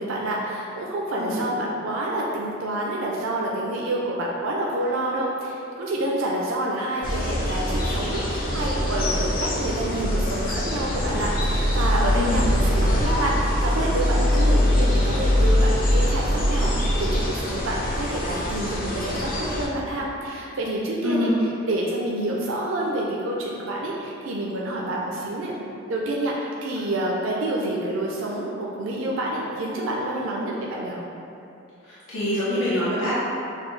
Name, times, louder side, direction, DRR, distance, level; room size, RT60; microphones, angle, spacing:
voice 1, 0.0-25.5 25.9-31.0, right 1 dB, 85° right, -3 dB, 0.5 m, -28 dB
sound 1, 7.0-19.7, equal, 45° left, 0.6 m, -23 dB
voice 2, 31.8-33.1, left 1 dB, 85° left, -11 dB, 0.9 m, -26 dB
6.5 x 2.3 x 3.2 m, 2.7 s
head